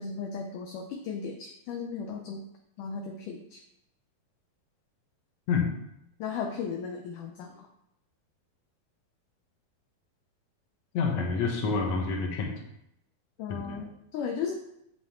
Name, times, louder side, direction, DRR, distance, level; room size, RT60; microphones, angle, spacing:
voice 1, 0.0-2.4 2.8-3.6 6.2-7.7 13.4-14.5, left 6 dB, 75° left, 3 dB, 2.0 m, -36 dB
voice 2, 10.9-12.5 13.5-13.8, left 5 dB, 55° left, 1 dB, 2.0 m, -28 dB
7.8 x 7.8 x 3.7 m, 0.79 s
omnidirectional pair, 4.3 m